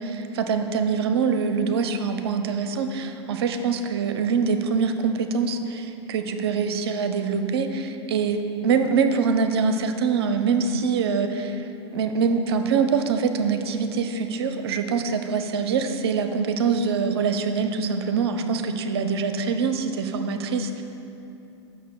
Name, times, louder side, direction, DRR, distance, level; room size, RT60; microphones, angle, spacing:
voice 1, 0.0-8.4 8.6-11.7 11.9-20.8, right 5 dB, 60° right, 7 dB, 0.7 m, -24 dB
6.4 x 5.9 x 7.0 m, 2.8 s
figure-of-eight pair, 95°, 15 cm